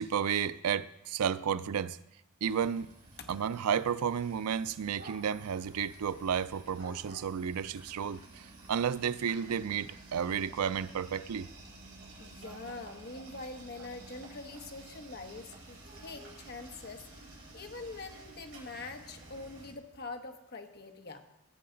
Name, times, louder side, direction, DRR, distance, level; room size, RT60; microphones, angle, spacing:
voice 1, 0.0-2.0 2.4-2.9 3.3-11.5, right 7 dB, 85° right, 16 dB, 0.4 m, -32 dB
sound 1, 2.4-19.7, right 2 dB, 60° right, 4.2 m, -52 dB
voice 2, 12.2-17.2 17.5-21.2, left 3 dB, 45° left, 4 dB, 1.1 m, -44 dB
15.5 x 7.6 x 3.9 m, 0.87 s
head